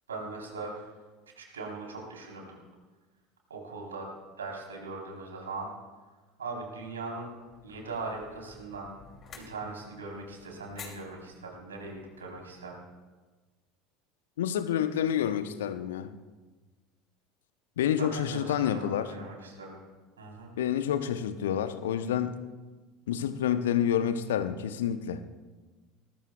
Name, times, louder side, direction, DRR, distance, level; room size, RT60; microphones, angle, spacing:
voice 1, 0.1-0.9 1.4-2.6 3.5-4.1 4.4-5.7 6.4-7.3 7.6-8.9 9.4-12.8 18.0-19.8 20.2-20.5, right 3 dB, 75° right, -1 dB, 3.9 m, -40 dB
sound 1, 7.4-12.8, left 5 dB, 30° left, 3.0 m, -52 dB
voice 2, 14.4-16.1 17.8-19.1 20.6-22.4 23.1-25.2, left 9 dB, 65° left, 11 dB, 0.9 m, -28 dB
23.5 x 20.0 x 2.4 m, 1.3 s
figure-of-eight pair, 70°, 0 cm